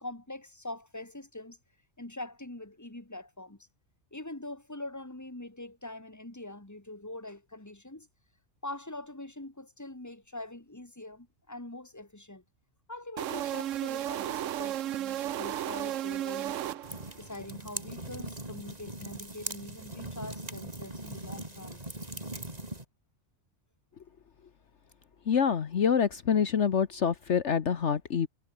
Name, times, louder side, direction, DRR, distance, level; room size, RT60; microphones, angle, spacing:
voice 1, 0.0-1.6 2.0-3.7 4.1-8.1 8.6-12.4 12.9-16.8 17.2-21.8, left 2 dB, 15° left, 2.4 m, -43 dB
sound 1, 13.2-17.2, right 12 dB, 75° right, 1.0 m, -34 dB
sound 2, 16.8-22.8, right 1 dB, 30° right, 4.0 m, -40 dB
voice 2, 25.3-28.3, left 7 dB, 60° left, 1.4 m, -26 dB
omnidirectional pair, 1.3 m